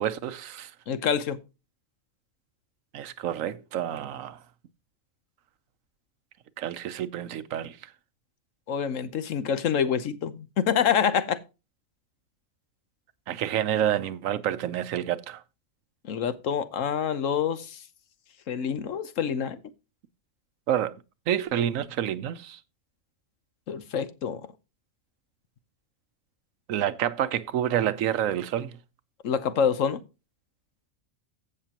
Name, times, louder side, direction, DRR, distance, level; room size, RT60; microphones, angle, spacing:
voice 1, 0.0-0.7 2.9-4.4 6.6-7.8 13.3-15.4 20.7-20.9 21.3-22.6 26.7-28.7, right 10 dB, 85° right, 1.1 m, -28 dB
voice 2, 0.9-1.4 8.7-11.4 16.1-17.8 18.5-19.6 23.7-24.5 29.2-30.0, left 7 dB, 80° left, 1.2 m, -26 dB
15.0 x 6.5 x 2.9 m
omnidirectional pair, 1.3 m